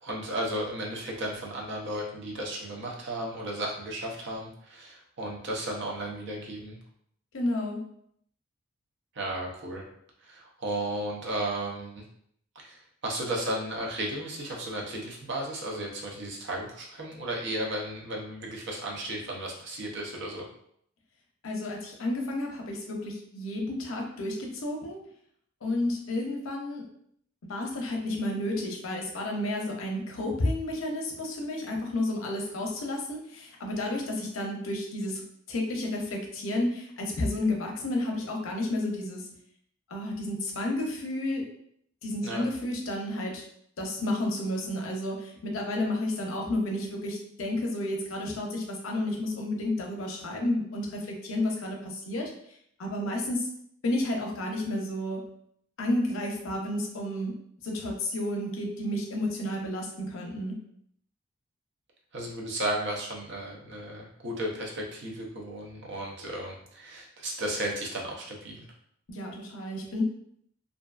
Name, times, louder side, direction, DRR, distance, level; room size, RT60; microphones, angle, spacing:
voice 1, 0.0-6.8 9.1-9.8 10.2-12.0 12.5-20.5 42.2-42.4 62.1-68.6, right 1 dB, 60° right, -2 dB, 0.6 m, -34 dB
voice 2, 7.3-7.8 21.4-25.0 25.6-26.8 27.5-35.2 35.5-39.2 39.9-41.4 42.0-43.4 43.8-52.3 52.8-53.5 53.8-55.2 55.8-57.4 57.6-60.5 69.1-70.0, left 1 dB, 70° left, 1 dB, 0.6 m, -31 dB
2.5 x 2.3 x 2.3 m, 0.68 s
head